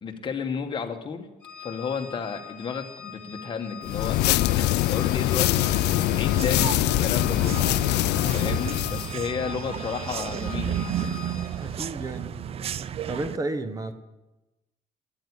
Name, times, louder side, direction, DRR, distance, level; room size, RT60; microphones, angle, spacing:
voice 1, 0.0-1.3 1.6-7.7 8.3-10.8, left 6 dB, 30° left, 1.3 m, -32 dB
Organ, 1.4-11.8, left 8 dB, 10° left, 2.1 m, -42 dB
sound 1, 3.8-9.1, left 15 dB, 80° left, 0.4 m, -23 dB
sound 2, 5.6-13.4, right 9 dB, 35° right, 0.4 m, -33 dB
voice 2, 8.3-8.8 11.5-12.4 13.1-13.9, right 2 dB, 20° right, 0.9 m, -33 dB
9.6 x 9.2 x 9.6 m
cardioid pair, 150°, 17 cm